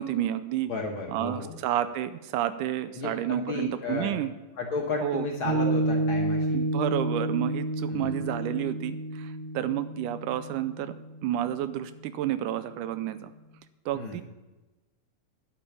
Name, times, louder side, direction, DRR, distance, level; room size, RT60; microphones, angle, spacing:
voice 1, 0.0-0.7 1.1-4.3 5.0-5.3 6.5-10.9 11.2-13.3 13.9-14.2, right 12 dB, 80° right, 12 dB, 2.1 m, -30 dB
voice 2, 0.7-1.6 2.9-4.2 4.6-6.6 7.9-8.2 13.9-14.2, left 3 dB, 55° left, 0 dB, 1.5 m, -33 dB
Piano, 5.5-12.1, right 2 dB, 50° right, 1.3 m, -30 dB
9.9 x 8.5 x 7.0 m, 1.1 s
omnidirectional pair, 3.7 m